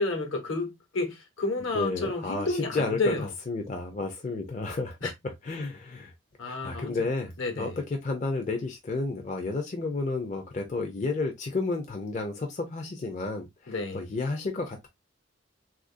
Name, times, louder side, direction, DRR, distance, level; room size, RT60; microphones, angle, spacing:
voice 1, 0.0-3.3 5.0-5.1 6.4-7.1 7.4-7.8 13.7-14.1, left 2 dB, 75° left, 1.0 m, -30 dB
voice 2, 1.7-3.1 3.5-5.0 5.4-6.1 6.5-14.9, left 3 dB, 35° left, 0.4 m, -31 dB
3.5 x 2.4 x 2.4 m
head